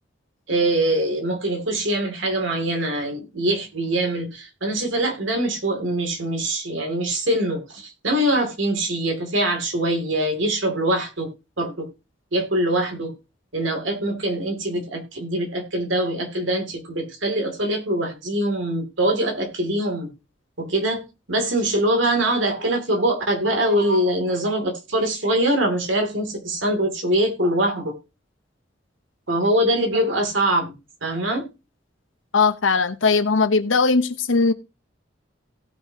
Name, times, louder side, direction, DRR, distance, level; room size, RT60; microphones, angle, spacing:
voice 1, 0.5-11.9 12.3-13.1 13.5-20.1 20.6-27.9 29.3-30.7 31.0-31.5, right 1 dB, 75° right, 4 dB, 2.8 m, -23 dB
voice 2, 32.3-34.5, left 4 dB, 90° left, 11 dB, 0.9 m, -19 dB
17.0 x 5.7 x 2.9 m, 0.28 s
head